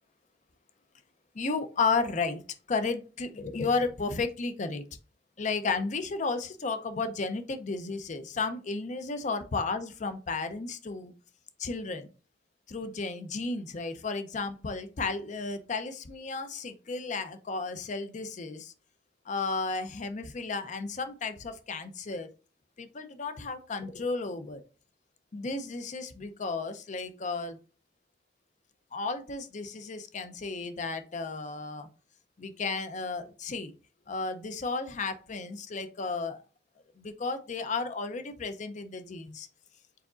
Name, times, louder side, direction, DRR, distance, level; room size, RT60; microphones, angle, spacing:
voice 1, 1.3-2.4 2.7-4.8 5.4-11.1 11.6-12.1 12.7-18.7 19.3-22.3 22.8-24.6 25.3-27.6 28.9-31.9 32.4-33.7 34.1-36.4 37.0-39.5, left 4 dB, 40° left, 9 dB, 0.5 m, -33 dB
4.7 x 3.8 x 2.4 m, 0.35 s
head